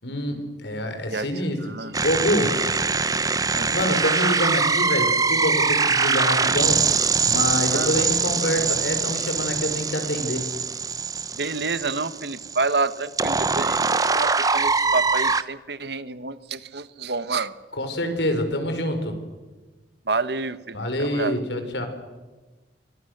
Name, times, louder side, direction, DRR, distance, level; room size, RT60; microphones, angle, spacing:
voice 1, 0.0-2.6 3.7-6.8 7.2-10.5 17.8-19.2 20.7-21.9, left 1 dB, 70° left, 6 dB, 5.2 m, -26 dB
voice 2, 1.1-1.9 2.8-2.9 3.5-3.7 7.7-8.0 11.3-17.5 20.1-21.4, right 3 dB, 65° right, 14 dB, 1.2 m, -29 dB
sound 1, 1.9-15.4, right 4 dB, 20° right, 0.7 m, -23 dB
30.0 x 24.5 x 6.7 m, 1.2 s
head